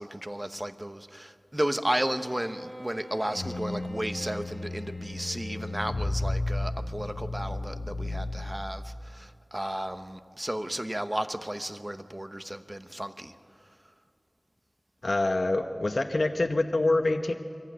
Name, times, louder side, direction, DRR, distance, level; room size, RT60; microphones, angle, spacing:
voice 1, 0.0-13.3, right 1 dB, 20° right, 9 dB, 1.0 m, -33 dB
Bowed string instrument, 1.8-6.3, equal, 40° right, 3.9 m, -47 dB
sound 1, 3.3-8.8, left 2 dB, 90° left, 1.1 m, -33 dB
voice 2, 15.0-17.3, left 2 dB, 65° left, 4 dB, 0.9 m, -25 dB
24.0 x 15.0 x 9.3 m, 2.4 s
wide cardioid pair, 55°, 0 cm